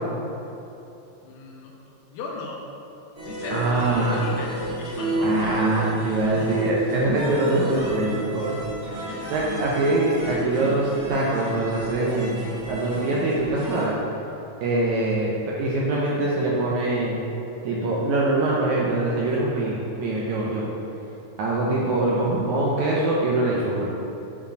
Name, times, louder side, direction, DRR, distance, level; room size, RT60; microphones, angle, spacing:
voice 1, 1.2-2.6 3.2-5.8 6.2-6.5 8.5-8.6 8.9-9.8, left 3 dB, 90° left, -1 dB, 2.8 m, -37 dB
sound 1, 3.1-13.8, right 1 dB, 40° right, 1.3 m, -32 dB
voice 2, 3.5-4.2 5.2-8.5 9.3-12.4 12.7-14.0 14.6-17.2 17.6-20.7 21.4-23.9, right 2 dB, 75° right, -4 dB, 1.7 m, -23 dB
8.7 x 4.7 x 4.5 m, 2.8 s
omnidirectional pair, 4.1 m